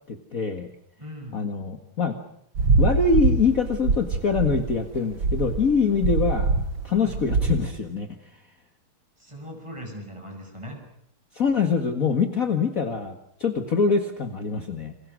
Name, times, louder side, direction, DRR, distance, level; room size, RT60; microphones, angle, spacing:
voice 1, 0.1-0.7 1.3-2.2 2.8-6.5 6.8-8.1 11.3-14.9, left 5 dB, 40° left, 6 dB, 2.1 m, -24 dB
voice 2, 1.0-1.4 1.7-1.8 6.9-7.2 9.2-10.8, equal, 15° right, 3 dB, 7.9 m, -39 dB
sound 1, 2.6-7.7, right 4 dB, 65° right, 2.4 m, -23 dB
29.0 x 27.0 x 6.3 m, 0.71 s
omnidirectional pair, 2.4 m